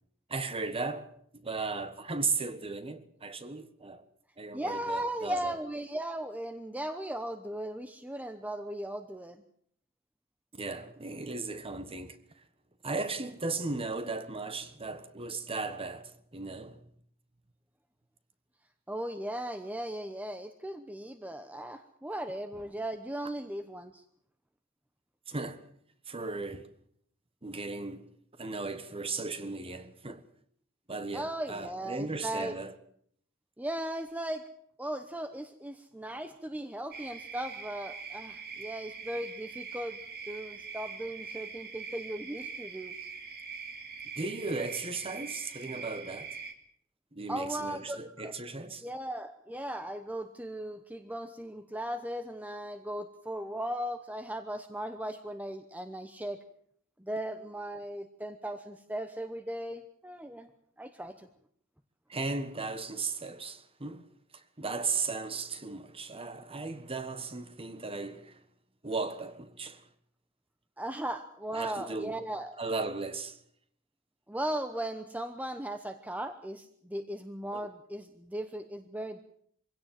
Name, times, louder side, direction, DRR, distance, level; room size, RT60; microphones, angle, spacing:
voice 1, 0.3-4.1 4.4-5.6 10.5-12.4 12.8-16.8 25.3-25.6 26.1-26.7 27.4-28.1 28.4-30.2 30.9-32.8 44.2-46.4 47.1-48.9 62.1-64.0 64.3-68.4 68.8-69.9 71.5-72.2 72.6-73.4 77.5-77.7, right 3 dB, 25° right, 1.4 m, -36 dB
voice 2, 4.5-9.4 18.9-24.0 31.1-32.6 33.6-34.4 34.8-40.0 40.3-42.9 47.3-48.4 48.8-56.4 57.0-60.5 60.8-61.3 70.8-72.6 74.3-79.2, right 1 dB, 5° right, 0.9 m, -37 dB
sound 1, 36.9-46.5, right 5 dB, 45° right, 2.4 m, -43 dB
24.0 x 16.5 x 7.6 m
head